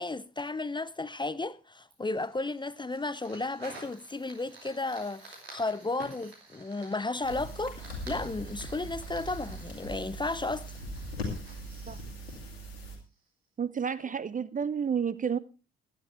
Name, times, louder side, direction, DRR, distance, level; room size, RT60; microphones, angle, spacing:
voice 1, 0.0-10.7, left 2 dB, 15° left, 0.7 m, -34 dB
Fire, 1.9-13.3, right 3 dB, 85° right, 2.7 m, -52 dB
sound 1, 7.2-13.0, equal, 80° left, 2.4 m, -40 dB
voice 2, 13.6-15.4, right 7 dB, 25° right, 0.6 m, -30 dB
16.5 x 11.0 x 3.3 m
figure-of-eight pair, 45°, 30 cm